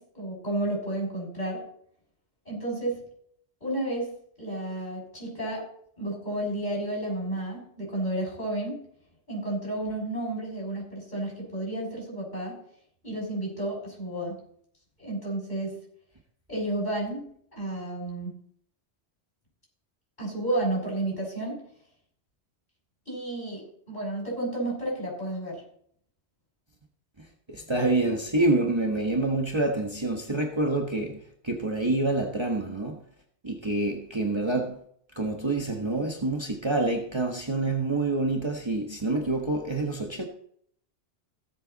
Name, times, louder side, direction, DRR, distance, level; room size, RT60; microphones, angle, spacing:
voice 1, 0.0-1.6 2.4-3.0 3.6-5.6 6.0-8.8 9.3-12.6 13.0-14.4 15.0-15.7 16.5-17.2 17.5-18.3 20.2-21.6 23.1-25.6, right 1 dB, 40° left, 6.6 m, -31 dB
voice 2, 27.5-33.0 33.4-34.8 35.2-40.3, right 2 dB, 25° right, 1.4 m, -27 dB
17.5 x 8.1 x 4.1 m
omnidirectional pair, 1.1 m